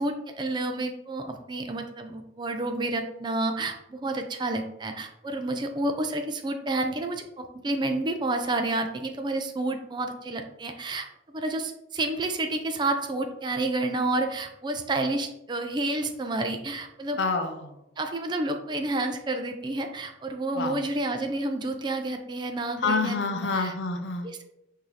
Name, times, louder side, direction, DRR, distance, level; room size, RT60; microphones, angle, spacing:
voice 1, 0.0-11.1 11.3-17.2 18.0-23.7 24.2-24.4, right 2 dB, 25° right, 5 dB, 0.4 m, -30 dB
voice 2, 17.2-17.7 20.6-20.8 22.8-24.3, left 3 dB, 75° left, 6 dB, 0.6 m, -27 dB
5.9 x 2.7 x 3.2 m, 0.82 s
head